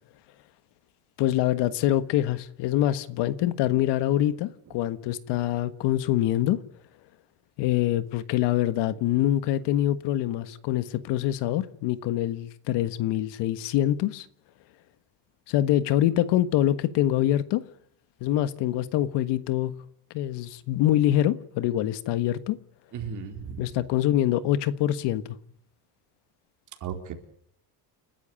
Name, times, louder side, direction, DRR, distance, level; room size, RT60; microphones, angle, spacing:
voice 1, 1.2-6.6 7.6-14.3 15.5-17.6 18.2-19.7 20.1-22.6 23.6-25.2, left 13 dB, 70° left, 1.5 m, -25 dB
voice 2, 22.9-23.7 26.8-27.1, right 7 dB, 45° right, 4.3 m, -35 dB
30.0 x 13.0 x 9.8 m
cardioid pair, 160°, 43 cm